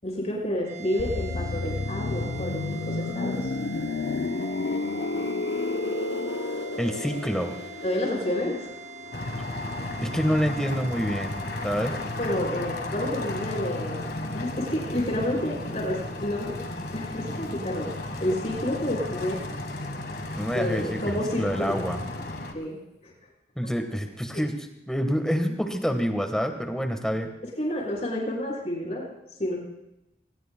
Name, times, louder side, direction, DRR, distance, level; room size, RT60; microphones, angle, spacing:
voice 1, 0.0-3.4 7.8-8.7 12.2-14.1 14.3-16.6 16.9-17.9 18.2-19.4 20.5-21.8 22.5-22.8 23.0-23.1 27.6-29.0 29.4-29.6, left 1 dB, 40° left, -3 dB, 6.1 m, -29 dB
sound 1, 0.6-15.2, right 5 dB, 45° right, 2.0 m, -45 dB
sound 2, 1.0-10.6 10.9-11.1, left 3 dB, 80° left, 0.6 m, -31 dB
voice 2, 6.8-7.6 10.0-11.4 11.6-12.0 20.4-22.0 23.6-24.5 24.9-27.3, equal, 5° left, 5 dB, 1.3 m, -27 dB
sound 3, 9.1-22.5, left 2 dB, 60° left, 1.7 m, -34 dB
21.5 x 20.0 x 2.2 m, 0.89 s
head